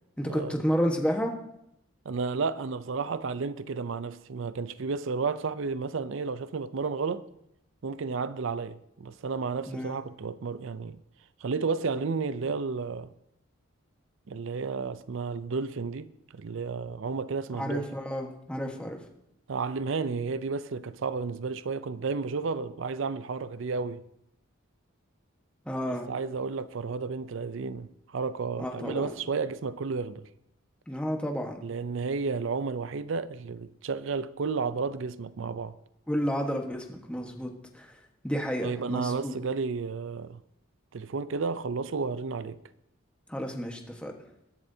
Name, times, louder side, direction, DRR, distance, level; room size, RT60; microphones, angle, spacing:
voice 1, 0.2-1.4 9.7-10.0 17.5-19.0 25.6-26.1 28.6-29.1 30.9-31.6 36.1-37.9 38.2-39.3 43.3-44.1, equal, 5° left, 1.3 m, -31 dB
voice 2, 2.1-7.3 7.8-11.0 11.4-13.1 14.3-17.8 19.5-24.0 25.9-30.3 31.6-35.7 38.6-40.4 40.9-42.6, right 4 dB, 65° right, 0.5 m, -32 dB
22.0 x 10.5 x 2.8 m
head